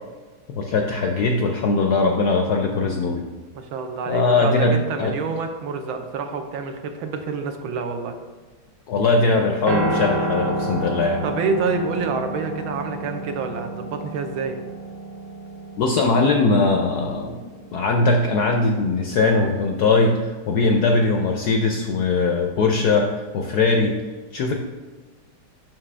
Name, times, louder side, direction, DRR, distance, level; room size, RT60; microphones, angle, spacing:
voice 1, 0.5-3.2 4.1-5.1 8.9-11.2 15.8-17.4 17.7-23.9 24.3-24.5, left 3 dB, 75° left, 2 dB, 0.9 m, -20 dB
voice 2, 3.5-8.2 11.2-14.6, right 4 dB, 80° right, 6 dB, 1.5 m, -27 dB
Piano, 9.7-17.9, right 2 dB, 55° right, 1.0 m, -30 dB
7.5 x 5.9 x 3.3 m, 1.3 s
omnidirectional pair, 2.3 m